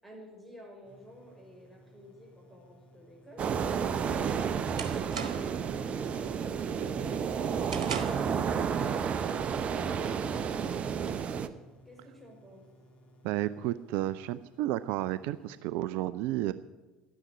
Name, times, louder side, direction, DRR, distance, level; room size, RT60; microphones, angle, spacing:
voice 1, 0.0-3.4 4.0-5.4 9.4-10.5 11.8-12.7, equal, ahead, 0 dB, 5.9 m, -52 dB
sound 1, 0.8-15.6, equal, 35° left, 2.5 m, -59 dB
sound 2, 3.4-11.5, right 7 dB, 35° right, 0.9 m, -31 dB
sound 3, 4.7-5.7 6.1-6.4 6.8-8.4, right 6 dB, 75° right, 1.4 m, -40 dB
voice 2, 13.2-16.5, right 14 dB, 55° right, 15 dB, 0.4 m, -32 dB
12.0 x 9.9 x 9.6 m, 1.2 s
figure-of-eight pair, 65°, 4 cm